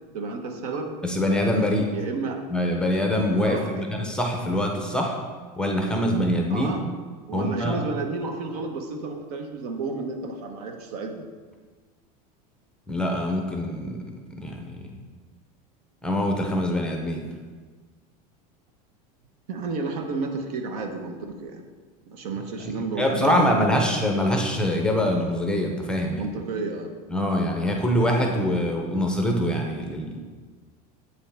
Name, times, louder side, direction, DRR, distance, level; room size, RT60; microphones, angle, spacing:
voice 1, 0.1-0.9 1.9-2.5 3.4-3.9 6.5-6.8 7.3-11.3 19.5-21.6 22.1-23.8 26.1-26.9, right 3 dB, 80° right, 5 dB, 1.0 m, -31 dB
voice 2, 1.0-1.9 2.5-5.2 5.6-6.8 7.3-7.8 12.9-14.0 14.3-14.9 16.0-17.2 23.0-26.2 27.1-30.2, equal, 5° left, 2 dB, 0.5 m, -24 dB
7.8 x 5.5 x 3.4 m, 1.4 s
supercardioid pair, 160°, 19 cm